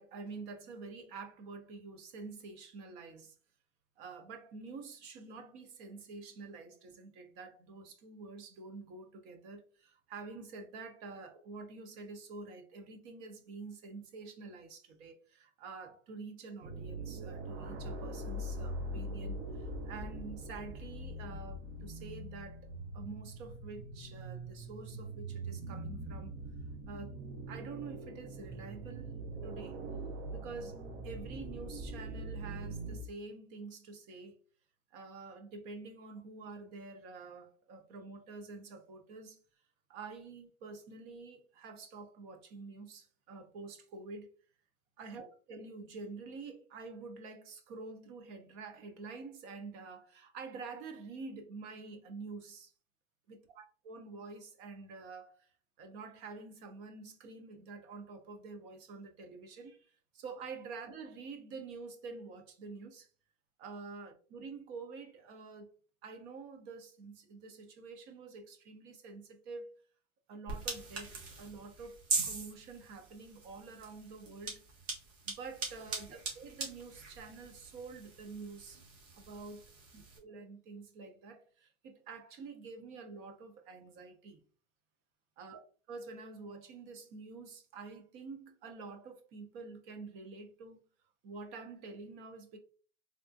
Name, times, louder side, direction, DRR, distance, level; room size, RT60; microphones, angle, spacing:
voice 1, 0.0-3.4 4.0-26.3 26.9-27.2 27.5-29.2 29.4-29.8 30.3-34.4 34.9-39.4 39.9-44.3 45.0-52.7 53.6-55.5 55.8-63.1 63.6-65.7 66.0-69.8 70.3-72.0 72.2-74.6 75.2-78.8 79.1-79.6 79.9-84.4 85.4-85.6 85.9-90.8 91.2-92.6, right 4 dB, 30° right, 0.4 m, -48 dB
sound 1, 16.6-33.0, right 1 dB, 55° right, 0.8 m, -42 dB
sound 2, 70.5-80.2, right 4 dB, 90° right, 1.4 m, -41 dB
3.5 x 2.3 x 2.5 m
supercardioid pair, 140°, 37 cm